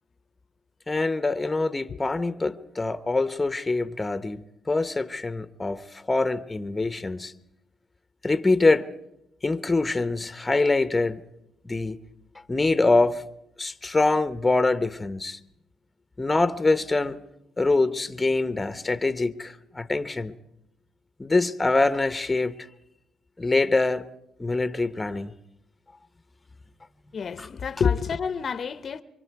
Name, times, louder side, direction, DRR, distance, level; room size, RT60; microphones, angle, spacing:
voice 1, 0.9-7.3 8.2-8.9 9.4-11.2 11.6-12.0 12.5-13.2 13.6-15.4 16.2-17.2 17.6-20.4 21.2-22.5 23.4-24.0 24.4-25.3 27.4-27.5, left 3 dB, 20° left, 0.9 m, -24 dB
voice 2, 27.1-29.0, left 6 dB, 50° left, 0.8 m, -27 dB
27.5 x 23.5 x 4.7 m
cardioid pair, 90°, 0 cm